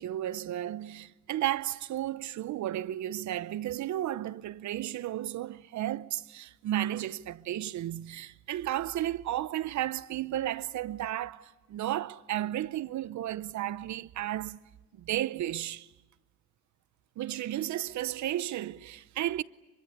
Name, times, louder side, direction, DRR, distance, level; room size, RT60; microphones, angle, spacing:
voice 1, 0.0-14.7 15.0-15.9 17.2-19.4, right 13 dB, 70° right, 0.8 m, -33 dB
24.5 x 22.5 x 9.6 m
cardioid pair, 90°, 30 cm